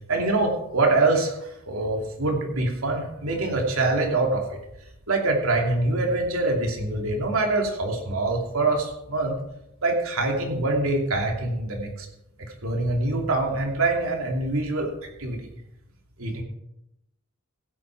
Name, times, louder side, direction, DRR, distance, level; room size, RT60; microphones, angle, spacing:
voice 1, 0.1-4.6 5.1-9.3 9.8-12.1 12.4-14.9 15.2-15.5 16.2-16.4, right 2 dB, 80° right, 1 dB, 2.8 m, -24 dB
16.0 x 8.7 x 4.6 m, 0.83 s
head